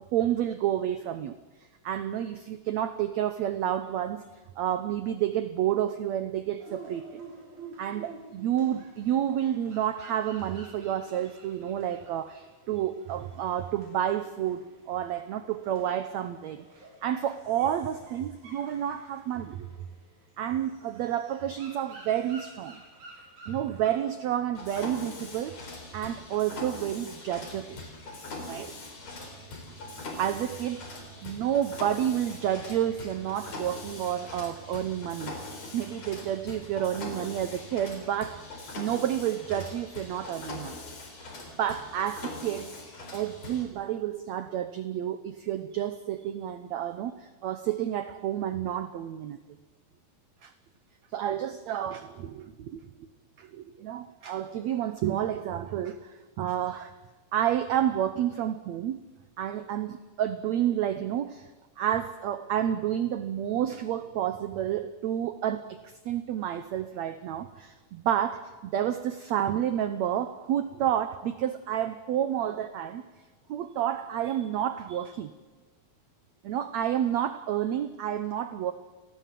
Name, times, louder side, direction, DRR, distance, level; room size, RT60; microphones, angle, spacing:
voice 1, 0.1-1.3 1.8-4.3 4.6-7.2 7.8-19.7 20.4-22.8 23.5-25.7 25.9-27.8 28.4-28.7 30.2-35.3 35.7-40.8 41.6-42.8 43.1-49.4 50.4-50.5 51.1-52.9 53.4-56.9 57.3-59.0 59.4-61.5 61.8-73.1 73.5-75.3 76.4-78.7, right 10 dB, 75° right, 1.7 m, -30 dB
sound 1, 6.6-24.2, right 3 dB, 55° right, 7.3 m, -51 dB
Mechanisms, 24.5-43.6, left 2 dB, 45° left, 5.2 m, -42 dB
30.0 x 18.5 x 7.6 m
omnidirectional pair, 4.2 m